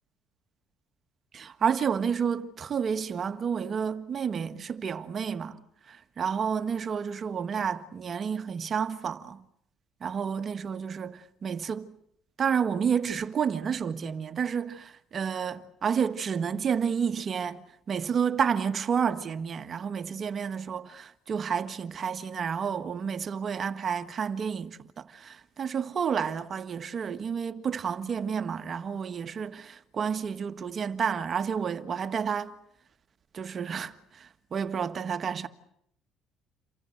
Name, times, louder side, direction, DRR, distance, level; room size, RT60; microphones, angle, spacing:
voice 1, 1.3-5.6 5.9-9.4 10.0-11.9 12.4-32.5 33.3-35.5, right 7 dB, 45° right, 1.6 m, -30 dB
28.5 x 24.0 x 8.0 m
supercardioid pair, 70°, 0 cm